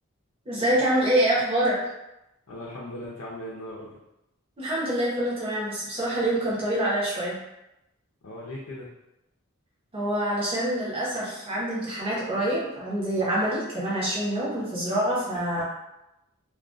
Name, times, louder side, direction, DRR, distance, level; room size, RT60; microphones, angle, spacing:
voice 1, 0.5-1.8 4.6-7.4 9.9-15.6, right 1 dB, 25° right, -7 dB, 0.8 m, -26 dB
voice 2, 2.5-4.0 8.2-8.9 15.5-15.6, left 1 dB, 85° left, -5 dB, 0.5 m, -38 dB
2.2 x 2.2 x 2.5 m, 0.90 s
head